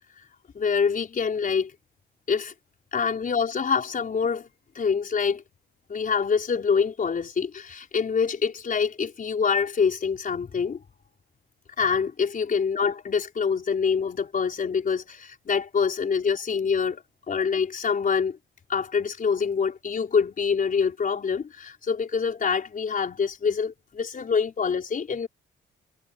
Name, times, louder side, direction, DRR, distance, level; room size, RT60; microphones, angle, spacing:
voice 1, 0.5-1.7 2.3-2.5 2.9-4.5 4.7-5.4 5.9-10.8 11.8-18.4 18.7-25.3, left 6 dB, 45° left, 4.7 m, -25 dB
cardioid pair, 90°, 20 cm